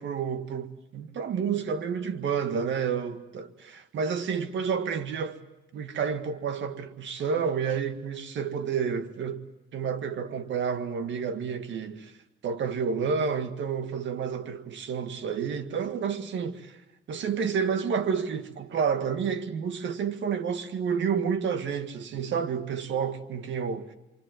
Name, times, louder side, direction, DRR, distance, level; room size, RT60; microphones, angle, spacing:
voice 1, 0.0-5.4 5.7-9.4 9.7-12.1 12.4-16.8 17.1-23.9, right 6 dB, 70° right, 1.9 m, -30 dB
28.0 x 24.5 x 7.9 m
cardioid pair, 90°, 20 cm